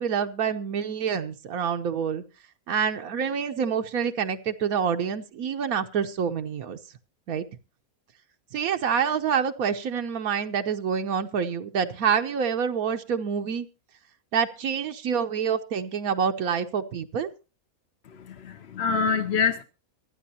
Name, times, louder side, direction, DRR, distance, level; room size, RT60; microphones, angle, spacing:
voice 1, 0.0-2.2 2.7-6.8 7.3-7.5 8.5-13.7 14.3-17.3, right 7 dB, 80° right, 1.3 m, -27 dB
voice 2, 18.2-19.6, left 5 dB, 55° left, 0.9 m, -25 dB
24.5 x 9.4 x 2.8 m
omnidirectional pair, 1.5 m